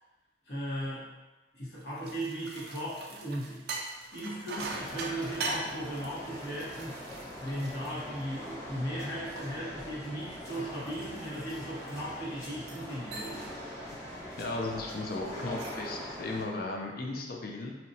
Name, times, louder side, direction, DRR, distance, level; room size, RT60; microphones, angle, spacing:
voice 1, 0.5-1.1 1.5-3.6 4.1-7.0 7.4-13.5, right 1 dB, 75° left, -8 dB, 1.0 m, -37 dB
sound 1, 1.8-8.6 9.0-12.0 12.5-12.9 13.1-13.6 13.9-14.2 15.3-15.9, right 3 dB, 60° right, 0.3 m, -42 dB
sound 2, 4.5-16.4, equal, 15° left, 0.7 m, -43 dB
voice 2, 14.4-17.7, left 2 dB, 55° left, 1 dB, 0.4 m, -36 dB
2.8 x 2.2 x 2.6 m, 1.1 s
head